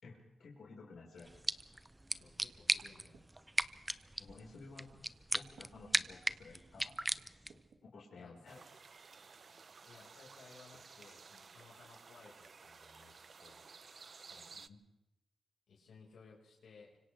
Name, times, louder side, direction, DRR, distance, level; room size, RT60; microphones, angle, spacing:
voice 1, 0.0-1.3 4.2-4.9 5.3-6.9 7.8-8.6 14.5-14.8, left 3 dB, 70° left, -3 dB, 4.8 m, -54 dB
sound 1, 1.2-7.7, right 1 dB, 15° right, 0.6 m, -39 dB
voice 2, 2.2-3.2 8.2-8.6 9.8-13.6 14.3-14.5 15.7-17.0, left 4 dB, 90° left, -3 dB, 5.0 m, -60 dB
sound 2, 2.4-3.3 4.0-4.1 4.8-5.1 5.4-5.8 6.4-6.5 7.1-7.8 8.9-9.0 9.5-9.8 10.7-10.9 11.3-11.4 11.7-12.0, right 5 dB, 75° right, 2.0 m, -65 dB
sound 3, 8.5-14.7, right 5 dB, 50° right, 0.7 m, -56 dB
30.0 x 25.5 x 3.4 m, 0.94 s
cardioid pair, 90°, 0 cm